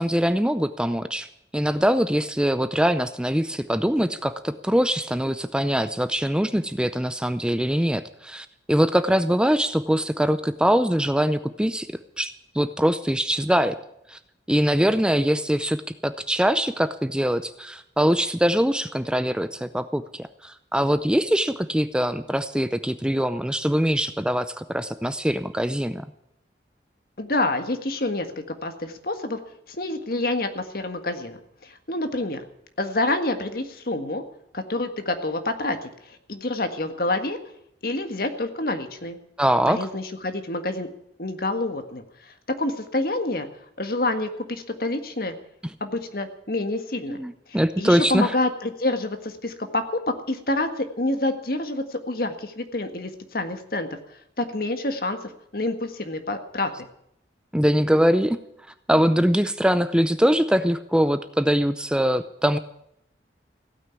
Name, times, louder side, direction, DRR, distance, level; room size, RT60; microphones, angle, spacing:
voice 1, 0.0-13.8 14.1-14.2 14.5-26.1 39.4-39.9 47.1-48.3 57.5-58.4 58.9-62.6, equal, 5° right, 11 dB, 0.5 m, -23 dB
voice 2, 27.2-29.4 29.7-32.4 32.8-34.2 34.5-37.4 37.8-39.2 39.7-40.9 41.2-43.5 43.8-45.4 45.8-47.2 47.5-56.9, left 2 dB, 55° left, 7 dB, 1.7 m, -28 dB
16.0 x 9.2 x 9.5 m, 0.75 s
head